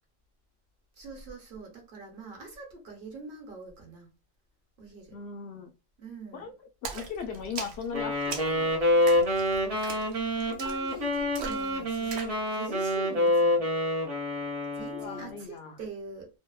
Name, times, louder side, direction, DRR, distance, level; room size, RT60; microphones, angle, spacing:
voice 1, 1.0-4.1 4.8-5.2 6.0-6.5 10.3-13.7 14.7-16.4, right 3 dB, 60° right, 1.0 m, -44 dB
voice 2, 5.1-5.7 6.3-6.5 6.9-8.7 15.0-15.8, left 6 dB, 75° left, 0.8 m, -38 dB
Splash splatter, 6.8-12.4, right 5 dB, 90° right, 0.9 m, -41 dB
Wind instrument woodwind instrument, 7.9-15.4, left 1 dB, 40° right, 0.7 m, -27 dB
2.8 x 2.0 x 2.3 m
omnidirectional pair, 1.1 m